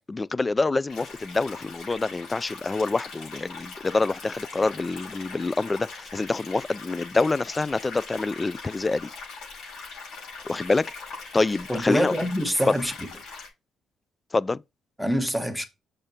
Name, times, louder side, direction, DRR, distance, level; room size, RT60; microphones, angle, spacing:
voice 1, 0.1-9.1 10.4-10.9 11.3-12.1 12.7-12.8 14.3-14.6, left 3 dB, 25° left, 0.3 m, -26 dB
sound 1, 0.9-13.5, left 4 dB, 80° left, 5.0 m, -41 dB
voice 2, 11.7-12.9 15.0-15.7, equal, 5° left, 1.5 m, -25 dB
7.1 x 6.7 x 2.9 m
cardioid pair, 90°, 0 cm